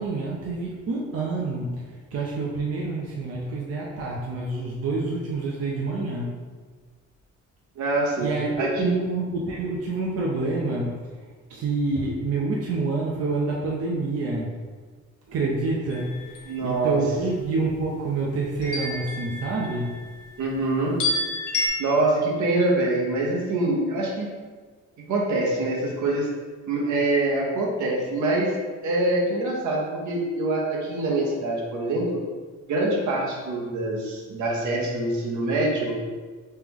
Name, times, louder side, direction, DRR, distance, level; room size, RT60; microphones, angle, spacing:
voice 1, 0.0-1.8 2.1-6.3 8.2-10.9 11.5-14.5 15.3-19.9, right 3 dB, 55° right, -3 dB, 0.6 m, -27 dB
voice 2, 7.8-8.3 8.6-9.0 16.5-17.0 20.4-21.0 21.8-24.3 25.1-26.3 26.7-32.2 32.7-36.0, right 2 dB, 70° right, -2 dB, 1.0 m, -25 dB
sound 1, 15.9-16.5 18.6-20.0 21.0-21.7, left 2 dB, 90° left, 0.8 m, -29 dB
3.3 x 2.9 x 3.6 m, 1.4 s
cardioid pair, 90°, 30 cm